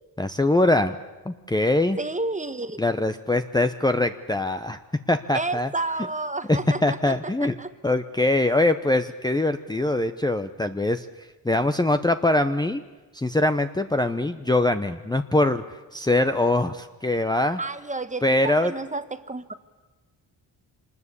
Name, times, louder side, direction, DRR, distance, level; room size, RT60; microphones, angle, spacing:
voice 1, 0.2-1.0 1.2-2.0 2.8-4.8 5.1-5.7 6.5-7.5 7.8-12.8 13.1-17.6 18.2-18.7, left 2 dB, 10° left, 8 dB, 0.8 m, -23 dB
voice 2, 2.0-2.8 5.3-7.0 7.6-7.7 17.6-19.5, right 2 dB, 15° right, 11 dB, 1.3 m, -30 dB
25.5 x 20.0 x 8.3 m, 1.3 s
cardioid pair, 85°, 42 cm